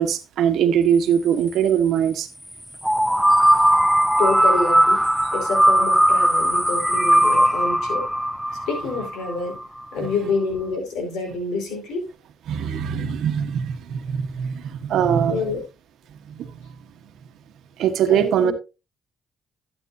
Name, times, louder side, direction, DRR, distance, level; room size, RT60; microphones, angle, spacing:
voice 1, 0.0-2.3 12.5-15.4 16.3-16.5 17.8-18.5, right 8 dB, 80° right, 1.3 m, -21 dB
sound 1, 2.8-9.6, right 1 dB, ahead, 0.5 m, -18 dB
voice 2, 4.2-5.0 5.3-8.1 8.7-9.6 9.9-12.1 15.2-15.6 18.1-18.5, left 3 dB, 90° left, 4.9 m, -27 dB
12.0 x 9.0 x 2.8 m
cardioid pair, 90°, 0 cm